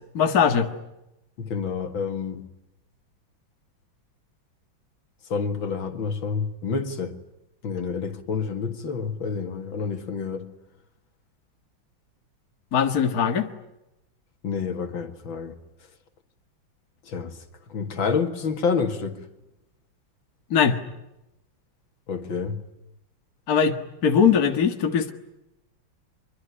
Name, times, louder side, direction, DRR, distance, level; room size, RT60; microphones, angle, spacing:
voice 1, 0.1-0.7 12.7-13.5 20.5-20.8 23.5-23.8 24.0-25.1, left 7 dB, 50° left, 2.1 m, -20 dB
voice 2, 1.4-2.4 5.3-7.2 7.6-10.5 14.4-15.5 17.1-17.4 17.7-19.2 22.1-22.6, left 5 dB, 80° left, 2.7 m, -28 dB
25.0 x 24.0 x 9.9 m
omnidirectional pair, 2.1 m